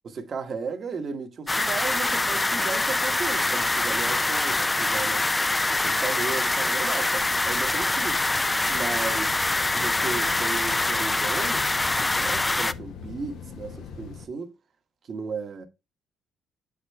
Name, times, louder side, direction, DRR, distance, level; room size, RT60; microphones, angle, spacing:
voice 1, 0.1-5.2 5.7-8.2 8.7-9.5 9.7-14.5 15.1-15.7, right 5 dB, 50° right, 1.1 m, -35 dB
sound 1, 1.5-12.7, left 2 dB, 15° left, 0.4 m, -24 dB
sound 2, 7.2-14.3, left 6 dB, 75° left, 0.9 m, -42 dB
6.6 x 5.0 x 3.3 m
cardioid pair, 85°, 0 cm